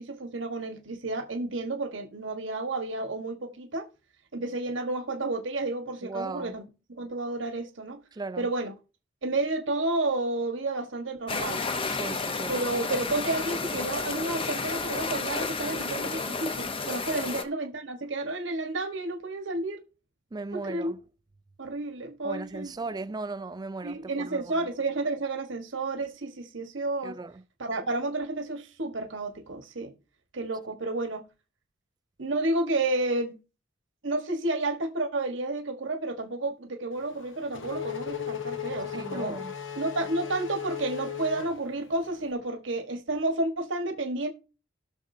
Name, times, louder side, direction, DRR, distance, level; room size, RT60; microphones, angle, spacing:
voice 1, 0.0-3.9 4.3-6.6 6.9-8.0 8.4-8.7 9.2-11.6 12.5-19.8 20.5-20.9 21.6-22.7 23.8-27.2 27.6-30.0 30.3-31.2 32.2-33.4 34.0-39.4 39.7-44.3, right 2 dB, 75° right, 1.3 m, -31 dB
voice 2, 6.0-6.6 8.1-8.5 11.9-12.6 17.1-17.4 20.3-21.0 22.2-24.7 27.0-27.4 38.9-39.5, right 3 dB, 20° right, 0.4 m, -37 dB
sound 1, 11.3-17.4, left 4 dB, 30° left, 0.8 m, -31 dB
Race car auto racing / Accelerating revving vroom, 37.0-42.2, left 9 dB, 75° left, 1.0 m, -37 dB
19.0 x 6.4 x 2.7 m
head